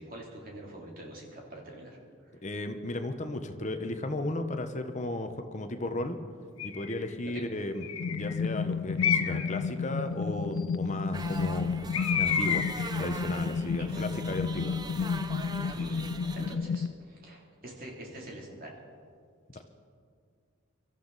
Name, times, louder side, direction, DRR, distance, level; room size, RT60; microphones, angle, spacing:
voice 1, 0.0-2.4 7.3-7.5 13.8-14.2 15.7-18.7, right 1 dB, 40° right, -2 dB, 3.1 m, -45 dB
voice 2, 2.4-6.2 6.6-11.9 12.2-12.7 12.9-14.7, left 1 dB, 35° left, 7 dB, 0.9 m, -35 dB
Bird, 6.6-7.0 7.8-8.4 9.0-9.6 11.9-12.9, left 7 dB, 85° left, 1.2 m, -30 dB
sound 1, 8.0-16.9, left 5 dB, 50° left, 0.3 m, -32 dB
sound 2, 11.1-16.6, right 3 dB, 20° right, 0.6 m, -42 dB
25.0 x 13.5 x 4.1 m, 2.1 s
head